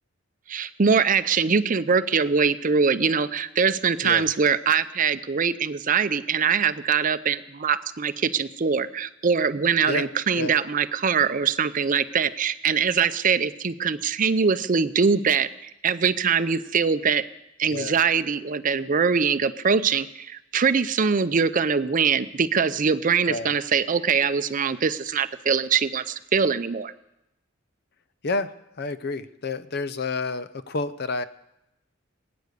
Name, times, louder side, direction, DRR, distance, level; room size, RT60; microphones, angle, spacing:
voice 1, 0.5-17.2 17.6-26.9, right 6 dB, 45° right, 13 dB, 0.6 m, -23 dB
voice 2, 9.9-10.5 17.7-18.0 23.2-23.5 28.2-31.2, left 3 dB, 55° left, 14 dB, 0.7 m, -30 dB
20.5 x 9.5 x 6.7 m, 0.89 s
head